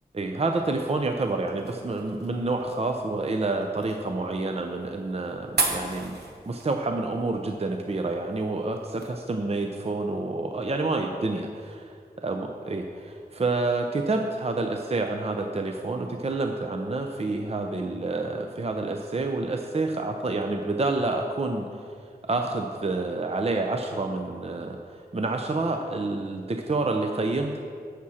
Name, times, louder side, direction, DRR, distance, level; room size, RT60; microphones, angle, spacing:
voice 1, 0.1-6.2 6.5-11.9 12.2-21.7 22.2-27.6, right 3 dB, 40° right, 4 dB, 0.6 m, -28 dB
sound 1, 0.6-9.1, right 3 dB, 90° right, 1.2 m, -37 dB
11.0 x 7.4 x 4.3 m, 2.3 s
wide cardioid pair, 60°, 16 cm